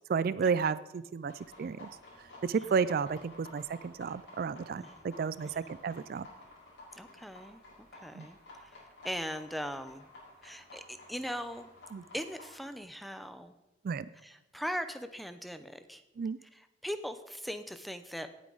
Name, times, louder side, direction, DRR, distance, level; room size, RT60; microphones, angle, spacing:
voice 1, 0.0-1.3 1.6-1.9 2.4-6.3 8.1-8.3 11.9-12.0 13.8-14.1 16.2-16.4, right 5 dB, 50° right, 16 dB, 0.3 m, -32 dB
sound 1, 1.3-12.6, left 2 dB, 65° left, 5.1 m, -53 dB
voice 2, 6.9-7.6 7.9-10.1 10.4-11.7 12.1-13.5 14.1-16.0 16.4-18.3, equal, ahead, 10 dB, 0.6 m, -40 dB
17.5 x 8.4 x 3.9 m, 1.0 s
head